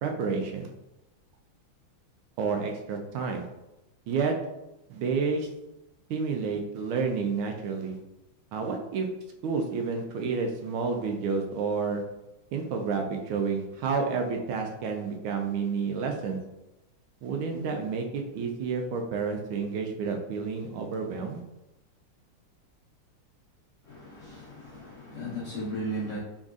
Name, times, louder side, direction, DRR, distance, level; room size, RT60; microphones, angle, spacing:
voice 1, 0.0-0.7 2.4-3.5 4.1-4.3 4.9-5.5 6.1-8.0 8.5-9.1 9.4-12.0 12.5-16.4 17.2-21.4, right 5 dB, 75° right, 3 dB, 1.4 m, -30 dB
voice 2, 23.8-26.2, right 1 dB, 50° left, -8 dB, 1.0 m, -36 dB
3.9 x 3.4 x 2.4 m, 0.95 s
omnidirectional pair, 2.3 m